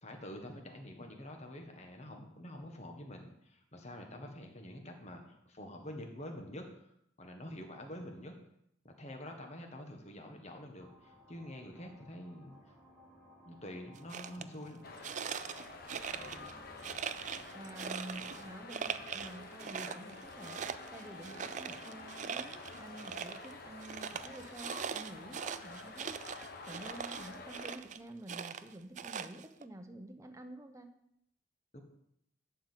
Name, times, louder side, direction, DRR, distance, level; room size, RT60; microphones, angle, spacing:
voice 1, 0.0-6.7 7.2-8.3 8.8-12.7 13.4-14.8 31.7-31.8, left 1 dB, 35° left, 3 dB, 1.5 m, -47 dB
sound 1, 10.8-24.9, left 1 dB, 10° left, 2.2 m, -60 dB
sound 2, 14.0-14.4 15.0-16.5 16.8-18.4 18.7-19.3 19.6-23.5 23.8-28.0 28.3-29.7, right 7 dB, 40° right, 0.4 m, -41 dB
sound 3, 14.8-27.7, left 3 dB, 50° left, 1.1 m, -49 dB
voice 2, 17.5-20.6 20.9-26.2 26.7-30.9, right 1 dB, 15° right, 7 dB, 0.8 m, -49 dB
11.5 x 4.8 x 7.5 m, 0.77 s
head